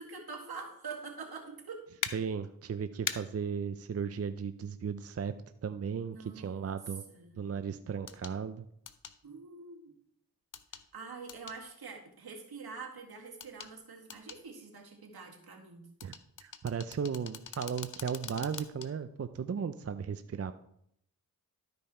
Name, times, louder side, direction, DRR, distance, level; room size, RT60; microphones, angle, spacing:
voice 1, 0.0-1.9 6.1-6.8 7.1-7.5 9.2-9.9 10.9-15.9, right 4 dB, 75° right, 1 dB, 2.0 m, -45 dB
sound 1, 2.0-2.1 3.1-3.2 5.2-5.3 8.1-8.3 8.9-9.2 10.5-10.8 11.3-11.6 13.4-13.7 14.1-14.4 16.0-18.9 19.3-19.4, left 7 dB, 55° left, 0.7 m, -41 dB
voice 2, 2.1-5.3 5.6-7.0 7.4-8.7 16.0-16.1 16.4-20.5, right 6 dB, 40° right, 11 dB, 0.5 m, -36 dB
12.0 x 5.3 x 4.3 m, 0.71 s
cardioid pair, 50°, 38 cm